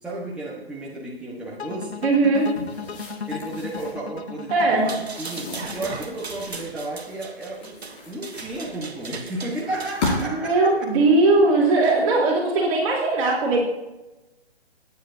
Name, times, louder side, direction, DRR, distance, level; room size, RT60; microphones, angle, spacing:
voice 1, 0.0-2.0 3.3-7.8 8.1-10.7 12.2-12.3, right 2 dB, 5° right, -6 dB, 1.3 m, -33 dB
sound 1, 1.6-6.7, left 7 dB, 85° left, 1.1 m, -36 dB
voice 2, 2.0-2.6 4.5-4.9 10.2-13.6, right 2 dB, 30° right, -4 dB, 3.4 m, -19 dB
sound 2, 2.3-4.0 4.9-6.8 7.4-9.0 9.7-10.5, left 3 dB, 40° left, 5.2 m, -34 dB
sound 3, 4.7-10.3, right 4 dB, 80° right, 1.6 m, -38 dB
21.5 x 9.5 x 2.7 m, 1.0 s
hypercardioid pair, 145°, 32 cm